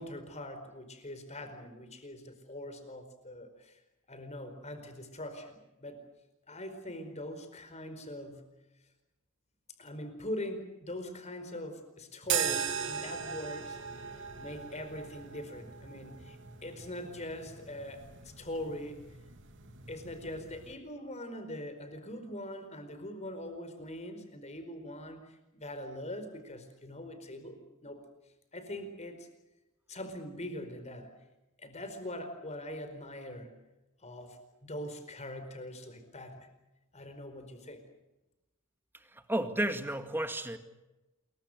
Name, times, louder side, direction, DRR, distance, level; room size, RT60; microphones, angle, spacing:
voice 1, 0.0-3.8 4.1-6.0 6.5-8.5 9.8-13.8 14.4-19.0 19.9-28.0 28.5-29.3 29.9-31.1 31.6-33.6 34.0-36.5 36.9-37.8, left 1 dB, 30° left, 8 dB, 4.7 m, -42 dB
sound 1, 12.2-20.7, right 8 dB, 60° right, 2.9 m, -39 dB
voice 2, 38.9-40.6, right 1 dB, 10° right, 8 dB, 2.1 m, -33 dB
28.0 x 23.0 x 6.7 m, 1.0 s
head